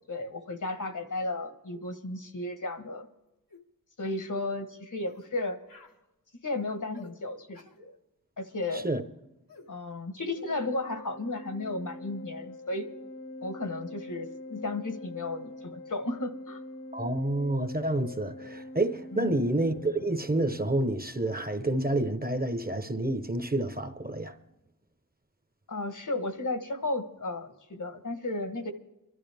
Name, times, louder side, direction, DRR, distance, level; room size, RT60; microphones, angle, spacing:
voice 1, 0.1-3.1 4.0-5.6 6.4-7.9 8.4-8.9 9.7-12.9 13.4-16.6 19.1-19.4 25.7-28.7, left 2 dB, 65° left, 1.3 m, -34 dB
sound 1, 3.5-3.7 4.0-4.3 5.0-5.3 5.7-6.0 6.9-7.2 7.5-7.8 9.5-9.7, left 4 dB, 85° left, 1.2 m, -52 dB
Organ, 10.3-21.1, left 1 dB, 45° left, 0.8 m, -44 dB
voice 2, 16.9-24.3, right 1 dB, 25° right, 1.0 m, -29 dB
24.0 x 12.5 x 3.5 m
wide cardioid pair, 60°, 33 cm